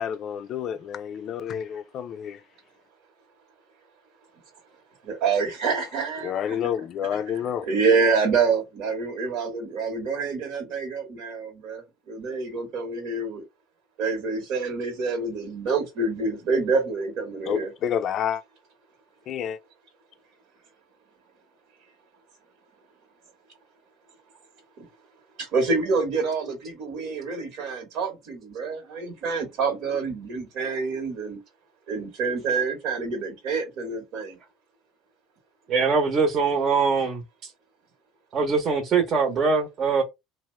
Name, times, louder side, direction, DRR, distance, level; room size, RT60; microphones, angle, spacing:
voice 1, 0.0-2.4 6.2-7.7 17.5-18.4 19.3-19.6, left 9 dB, 45° left, 0.4 m, -29 dB
voice 2, 5.0-6.8 7.1-13.4 14.0-17.7 24.8-24.9 25.4-31.4 31.9-34.4, right 4 dB, 65° right, 1.0 m, -27 dB
voice 3, 35.7-37.5 38.3-40.0, right 5 dB, 40° right, 0.8 m, -23 dB
2.9 x 2.1 x 3.0 m
supercardioid pair, 110°, 0 cm